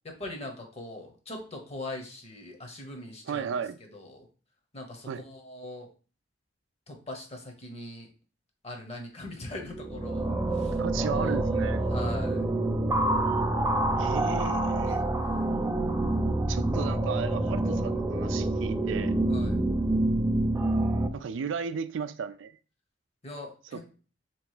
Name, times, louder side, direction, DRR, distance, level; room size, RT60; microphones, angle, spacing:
voice 1, 0.2-3.5 3.8-4.3 4.7-5.9 6.9-8.1 8.6-10.8 11.1-12.5 14.4-15.6 19.3-19.6 23.2-23.8, left 2 dB, 35° left, 1.0 m, -42 dB
voice 2, 3.3-3.8 5.1-5.2 10.8-11.8 14.0-15.1 16.5-19.1 21.1-22.6 23.7-23.8, right 6 dB, 80° right, 0.4 m, -34 dB
sound 1, 9.5-21.1, right 1 dB, 15° right, 0.4 m, -27 dB
3.4 x 3.0 x 4.8 m
head